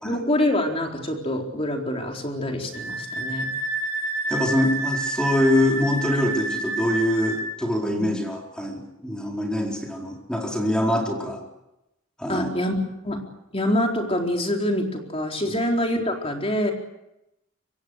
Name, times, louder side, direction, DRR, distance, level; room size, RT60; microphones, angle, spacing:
voice 1, 0.0-3.5 8.0-8.1 12.3-12.7 13.0-13.2 13.5-16.7, left 1 dB, 30° left, 2 dB, 4.2 m, -25 dB
Wind instrument woodwind instrument, 2.7-7.5, right 2 dB, 80° right, 4.5 m, -29 dB
voice 2, 4.3-11.4 12.2-12.5 15.5-15.6, left 1 dB, 5° left, 0 dB, 4.5 m, -24 dB
27.0 x 23.5 x 6.6 m, 0.88 s
head